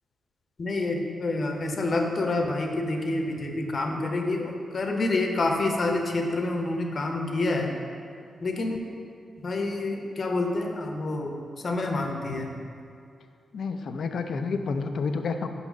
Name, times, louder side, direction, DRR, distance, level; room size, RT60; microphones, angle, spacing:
voice 1, 0.6-7.8 8.4-8.8 9.4-12.6, left 2 dB, 55° left, 3 dB, 0.8 m, -28 dB
voice 2, 13.5-15.5, left 4 dB, 70° left, 7 dB, 0.4 m, -29 dB
5.3 x 4.1 x 6.0 m, 2.4 s
supercardioid pair, 50°, 0 cm